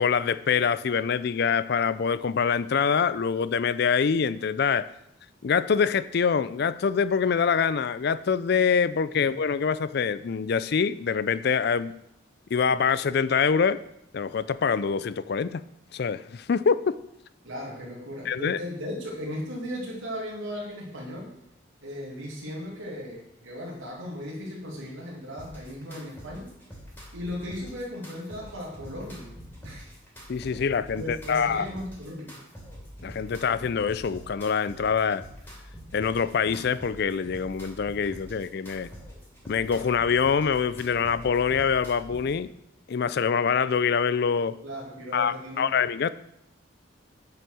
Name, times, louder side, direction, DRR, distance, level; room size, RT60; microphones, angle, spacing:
voice 1, 0.0-4.9 5.4-11.9 12.5-13.8 14.1-15.6 15.9-17.0 18.3-18.6 30.3-31.7 33.0-35.2 35.9-38.9 39.5-42.5 42.9-44.6 45.1-46.1, left 6 dB, 55° left, 15 dB, 0.4 m, -25 dB
voice 2, 17.4-21.3 21.8-26.5 27.1-29.3 29.6-29.9 30.9-32.4 44.6-45.7, equal, 80° right, -5 dB, 2.5 m, -37 dB
sound 1, 25.4-42.4, equal, 10° left, 2.9 m, -45 dB
8.9 x 5.6 x 6.3 m, 0.78 s
head